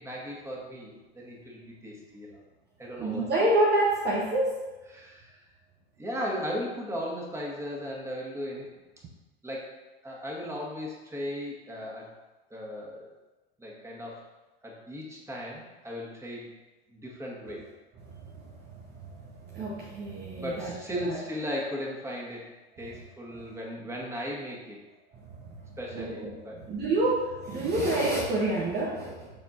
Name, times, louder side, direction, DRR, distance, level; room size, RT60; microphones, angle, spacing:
voice 1, 0.0-2.4 2.8-3.3 4.9-5.4 6.0-8.7 9.4-9.7 10.0-12.1 12.5-13.1 13.6-14.3 14.6-16.5 16.9-17.6 20.4-22.5 22.8-24.8 25.8-26.7, equal, 10° right, -3 dB, 1.9 m, -37 dB
voice 2, 3.0-4.6 17.5-17.6 18.0-21.2 23.3-23.4 25.1-29.3, right 1 dB, 30° right, -3 dB, 1.2 m, -29 dB
12.5 x 4.3 x 2.8 m, 1.1 s
hypercardioid pair, 95°, 31 cm